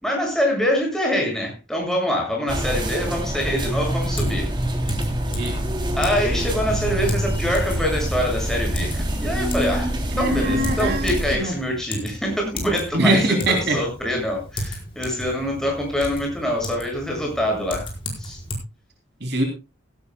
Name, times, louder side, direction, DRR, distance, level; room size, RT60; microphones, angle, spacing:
voice 1, 0.0-4.5 6.0-9.9 10.2-13.2 13.5-17.9 18.2-18.4, equal, 5° left, 0 dB, 7.0 m, -25 dB
sound 1, 2.5-11.3, right 1 dB, 25° right, 3.0 m, -25 dB
Typing, 3.5-18.6, equal, 25° left, 4.9 m, -35 dB
voice 2, 5.3-5.6 10.1-11.5 12.9-13.8 19.2-19.4, right 1 dB, 55° right, 2 dB, 3.1 m, -22 dB
17.0 x 16.5 x 2.3 m, 0.30 s
head